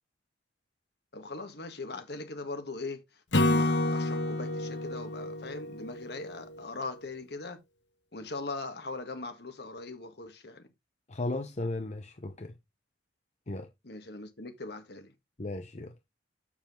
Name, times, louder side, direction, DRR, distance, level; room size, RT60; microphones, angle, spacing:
voice 1, 1.1-3.0 3.4-7.6 8.1-10.7 13.8-15.1, left 3 dB, 65° left, 1.7 m, -40 dB
Acoustic guitar / Strum, 3.3-6.6, left 2 dB, 90° left, 1.6 m, -29 dB
voice 2, 11.1-12.5 13.5-13.7 15.4-15.9, left 2 dB, 40° left, 0.8 m, -35 dB
7.6 x 6.9 x 3.7 m
head